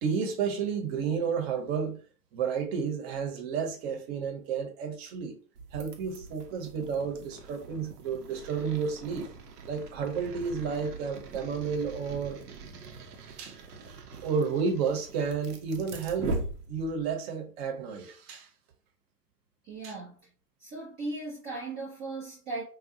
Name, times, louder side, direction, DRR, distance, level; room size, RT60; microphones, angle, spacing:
voice 1, 0.0-2.0 2.3-5.4 5.7-9.3 9.7-12.4 13.3-13.6 14.2-16.4 16.7-18.5 19.8-19.9, right 6 dB, 40° right, 1.0 m, -31 dB
sound 1, 5.5-17.1, right 3 dB, 70° right, 0.8 m, -41 dB
voice 2, 19.6-20.3 20.6-22.6, right 2 dB, 20° right, 0.6 m, -37 dB
3.9 x 2.3 x 2.7 m
figure-of-eight pair, 110°, 49 cm